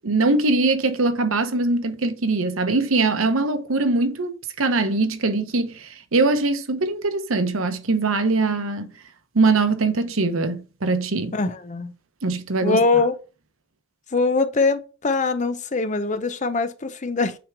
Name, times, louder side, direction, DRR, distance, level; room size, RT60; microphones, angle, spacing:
voice 1, 0.0-8.9 9.3-11.4 12.2-12.8, right 3 dB, 85° right, 0.9 m, -22 dB
voice 2, 11.3-11.9 12.6-13.1 14.1-17.4, left 3 dB, 35° left, 0.7 m, -22 dB
8.8 x 3.5 x 4.6 m
head